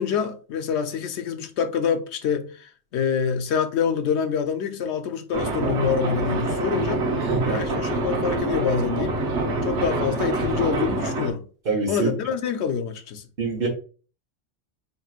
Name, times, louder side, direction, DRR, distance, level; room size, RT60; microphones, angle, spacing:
voice 1, 0.0-7.1 7.4-9.2 9.6-11.4 11.9-13.2, left 7 dB, 70° left, 0.9 m, -26 dB
sound 1, 5.3-11.3, right 2 dB, 75° right, 1.2 m, -25 dB
voice 2, 7.3-7.6 11.7-12.1 13.4-13.7, right 4 dB, 55° right, 1.1 m, -25 dB
4.5 x 3.1 x 2.4 m
omnidirectional pair, 1.2 m